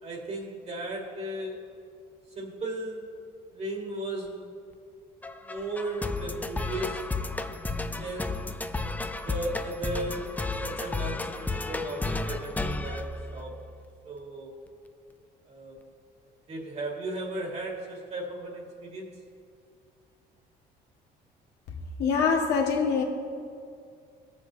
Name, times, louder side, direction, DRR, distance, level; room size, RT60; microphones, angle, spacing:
voice 1, 0.0-1.7 2.4-3.1 3.5-4.5 5.4-7.0 8.0-8.5 9.3-13.6 14.0-14.5 15.5-15.8 16.5-19.1, right 1 dB, 40° right, 0 dB, 2.0 m, -36 dB
sound 1, 5.2-13.8, left 3 dB, 10° left, 0.4 m, -33 dB
voice 2, 22.0-23.0, left 5 dB, 80° left, 0 dB, 1.5 m, -24 dB
19.5 x 7.3 x 2.8 m, 2.3 s
cardioid pair, 110°, 17 cm